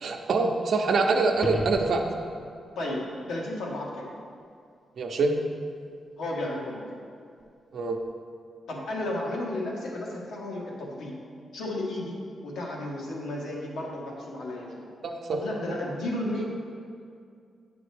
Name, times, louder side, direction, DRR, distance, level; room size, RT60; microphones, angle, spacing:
voice 1, 0.0-2.0 5.0-5.4 7.7-8.0 15.0-15.4, right 3 dB, 65° right, 3 dB, 0.7 m, -25 dB
sound 1, 1.3-2.5 7.4-7.5, left 1 dB, 30° left, 0.6 m, -34 dB
voice 2, 2.7-4.1 6.2-7.0 8.7-11.2 11.5-12.1 12.4-14.8 15.3-16.4, left 1 dB, 85° left, -3 dB, 1.3 m, -33 dB
9.1 x 5.0 x 3.4 m, 2.3 s
cardioid pair, 85°, 0 cm